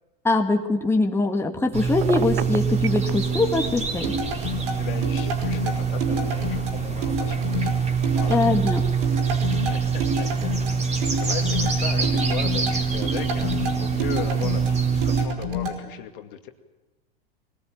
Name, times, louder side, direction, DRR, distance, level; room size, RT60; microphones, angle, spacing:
voice 1, 0.2-4.1 8.3-8.8, left 3 dB, 10° left, 3 dB, 1.8 m, -22 dB
sound 1, 1.7-15.3, right 5 dB, 20° right, 3.7 m, -25 dB
Telephone, 2.0-3.1, right 11 dB, 75° right, 0.7 m, -29 dB
sound 2, 4.0-15.8, equal, 60° right, 5.0 m, -29 dB
voice 2, 4.8-7.7 8.1-8.4 9.7-10.5 11.2-16.5, left 10 dB, 60° left, 6 dB, 2.3 m, -37 dB
22.0 x 18.0 x 9.0 m, 1.1 s
hypercardioid pair, 95°, 29 cm